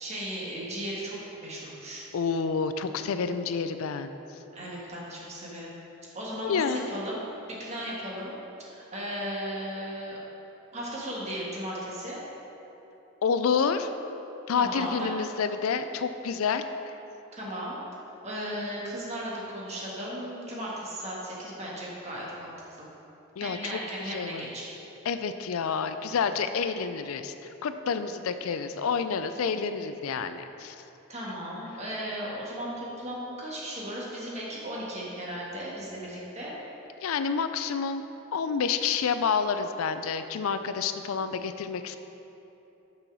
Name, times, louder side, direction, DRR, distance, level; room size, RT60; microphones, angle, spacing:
voice 1, 0.0-2.0 4.5-5.7 6.1-7.2 7.5-8.3 8.7-10.2 10.7-12.2 14.6-15.1 17.3-17.8 18.2-22.5 22.8-22.9 23.4-24.7 31.1-36.5, equal, 30° right, -5 dB, 1.5 m, -36 dB
voice 2, 2.1-4.1 6.4-6.9 13.2-13.9 14.5-16.6 23.4-23.8 24.1-24.5 25.1-27.3 27.6-30.8 37.0-38.0 38.3-42.0, left 6 dB, 85° left, 10 dB, 0.4 m, -28 dB
6.7 x 5.5 x 6.1 m, 3.0 s
head